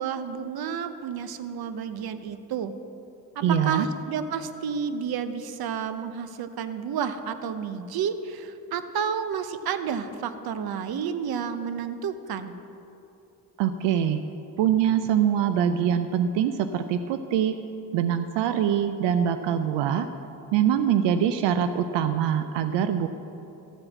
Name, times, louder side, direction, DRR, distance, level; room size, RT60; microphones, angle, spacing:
voice 1, 0.0-2.7 3.3-12.6, right 7 dB, 60° right, 11 dB, 0.8 m, -31 dB
voice 2, 3.4-3.9 13.6-14.2 14.6-17.6 17.9-20.1 20.5-23.1, right 9 dB, 90° right, 9 dB, 0.5 m, -24 dB
13.0 x 4.9 x 7.4 m, 2.8 s
cardioid pair, 75°, 42 cm